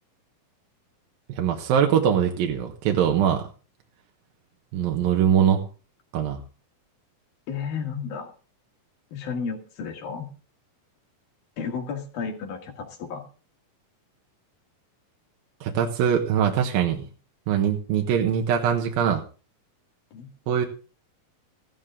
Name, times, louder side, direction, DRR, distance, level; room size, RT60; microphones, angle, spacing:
voice 1, 1.3-3.5 4.7-5.6 6.1-6.4 15.6-17.0 17.5-19.2 20.5-20.7, right 8 dB, 80° right, 3 dB, 3.2 m, -22 dB
voice 2, 7.5-8.3 9.1-10.3 11.6-13.2 20.1-20.3, left 6 dB, 80° left, 4 dB, 3.9 m, -32 dB
15.0 x 13.0 x 3.7 m, 0.36 s
omnidirectional pair, 4.1 m